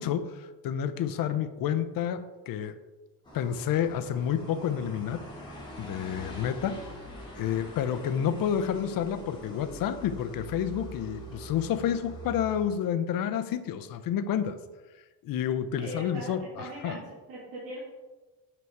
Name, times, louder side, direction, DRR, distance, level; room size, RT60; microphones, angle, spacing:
voice 1, 0.0-2.8 3.3-5.3 5.8-6.8 7.4-14.6 15.2-17.0, left 9 dB, 55° left, 11 dB, 0.6 m, -29 dB
sound 1, 3.2-12.7, equal, 10° left, 1.7 m, -44 dB
voice 2, 15.8-17.8, right 1 dB, 55° right, -8 dB, 2.4 m, -40 dB
7.6 x 6.0 x 4.5 m, 1.2 s
cardioid pair, 175°, 42 cm